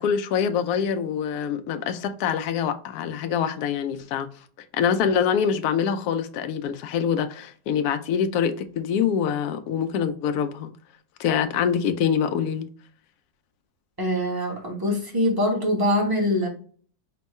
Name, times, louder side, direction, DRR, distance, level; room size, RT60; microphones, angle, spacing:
voice 1, 0.0-4.3 4.7-10.7 11.2-12.7, left 7 dB, 70° left, 1.0 m, -25 dB
voice 2, 14.0-16.5, left 1 dB, 15° right, 0.9 m, -23 dB
4.5 x 2.2 x 4.2 m
omnidirectional pair, 1.9 m